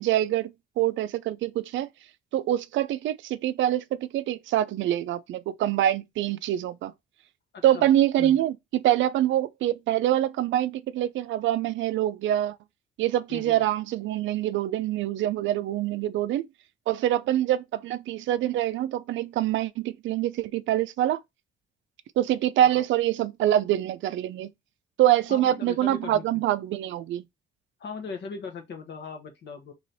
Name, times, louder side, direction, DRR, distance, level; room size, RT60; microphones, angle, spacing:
voice 1, 0.0-1.9 2.3-6.9 7.6-12.6 13.0-16.5 16.9-21.2 22.2-24.5 25.0-27.2, right 12 dB, 75° right, 0.4 m, -25 dB
voice 2, 7.5-8.4 13.3-13.6 22.7-22.8 25.3-26.4 27.8-29.7, left 5 dB, 60° left, 1.2 m, -39 dB
3.2 x 3.0 x 4.0 m
cardioid pair, 90°, 20 cm